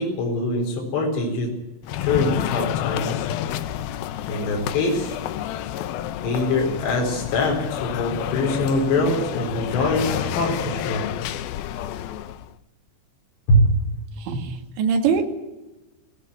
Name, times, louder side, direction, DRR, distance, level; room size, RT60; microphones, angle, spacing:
voice 1, 0.0-1.5 2.0-3.3 4.3-5.2 6.2-11.1 13.5-13.7, left 1 dB, 65° left, 0 dB, 6.3 m, -23 dB
sound 1, 1.8-12.5, left 11 dB, 85° left, 2.1 m, -29 dB
voice 2, 14.2-15.3, right 6 dB, 75° right, 4 dB, 4.2 m, -23 dB
17.5 x 17.0 x 9.7 m, 1.0 s
omnidirectional pair, 5.4 m